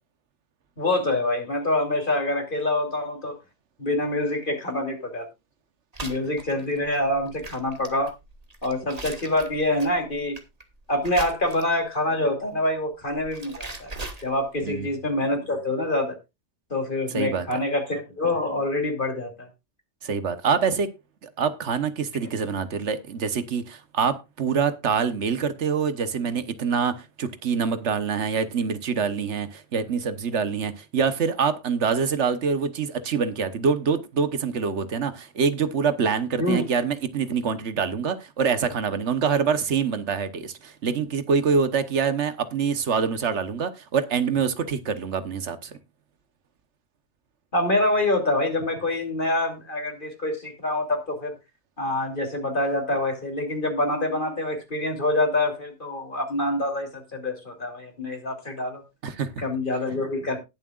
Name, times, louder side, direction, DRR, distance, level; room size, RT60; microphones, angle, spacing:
voice 1, 0.8-3.4 3.8-5.3 6.0-8.1 8.6-10.4 10.9-14.0 14.2-16.2 16.7-19.5 36.4-36.6 47.5-51.3 51.8-58.8 59.4-60.4, left 1 dB, 45° left, 3.3 m, -26 dB
sound 1, 5.9-11.9 12.9-14.7, right 2 dB, 35° right, 1.9 m, -40 dB
voice 2, 17.1-17.6 20.0-20.9 21.2-45.8 59.0-59.3, right 6 dB, 80° right, 1.4 m, -25 dB
19.5 x 7.5 x 2.4 m
omnidirectional pair, 1.2 m